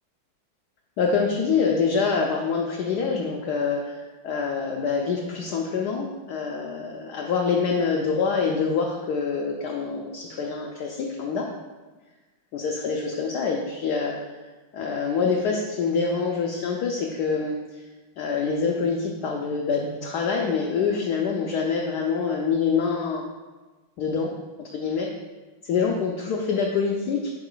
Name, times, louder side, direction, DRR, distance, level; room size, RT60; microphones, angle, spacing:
voice 1, 1.0-11.5 12.5-14.4 14.7-17.8 18.2-23.3 24.0-24.3 24.7-25.1 25.6-27.3, left 5 dB, 80° left, 0 dB, 0.9 m, -25 dB
6.4 x 3.9 x 3.8 m, 1.3 s
omnidirectional pair, 2.3 m